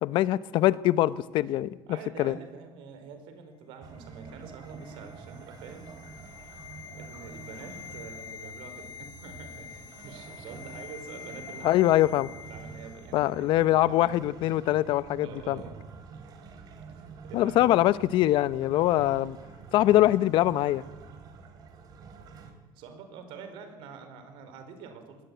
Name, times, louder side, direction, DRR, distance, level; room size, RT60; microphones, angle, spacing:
voice 1, 0.0-1.8 2.2-2.3 11.6-12.3 13.1-15.6 17.3-19.4 19.7-20.8, left 14 dB, 65° left, 0.8 m, -23 dB
voice 2, 1.9-12.2 12.5-14.1 15.2-15.8 16.9-18.5 22.7-25.2, right 5 dB, 75° right, 4.9 m, -46 dB
sound 1, 3.8-22.5, right 5 dB, 50° right, 3.9 m, -47 dB
sound 2, 4.1-13.4 13.6-13.8, left 8 dB, 45° left, 1.3 m, -47 dB
21.0 x 18.5 x 9.4 m
cardioid pair, 145°, 9 cm